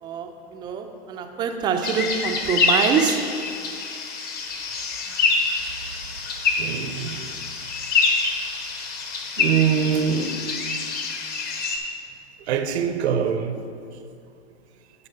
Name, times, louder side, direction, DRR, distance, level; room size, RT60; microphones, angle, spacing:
voice 1, 0.0-3.2, right 7 dB, 15° right, 5 dB, 0.3 m, -25 dB
sound 1, 1.8-11.8, left 4 dB, 30° left, 0.8 m, -26 dB
voice 2, 6.6-7.3 9.4-10.4 12.5-13.6, right 7 dB, 80° right, 9 dB, 0.7 m, -23 dB
9.7 x 4.3 x 5.4 m, 2.4 s
hypercardioid pair, 135°, 32 cm